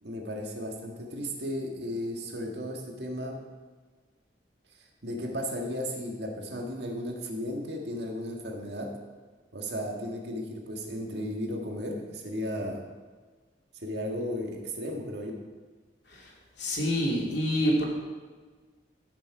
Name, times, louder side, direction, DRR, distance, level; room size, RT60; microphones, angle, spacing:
voice 1, 0.0-3.4 5.0-9.0 9.5-12.8 13.8-15.3, equal, 65° right, 1 dB, 1.8 m, -35 dB
voice 2, 16.6-17.8, equal, 70° left, -2 dB, 2.8 m, -26 dB
15.5 x 6.5 x 4.8 m, 1.4 s
head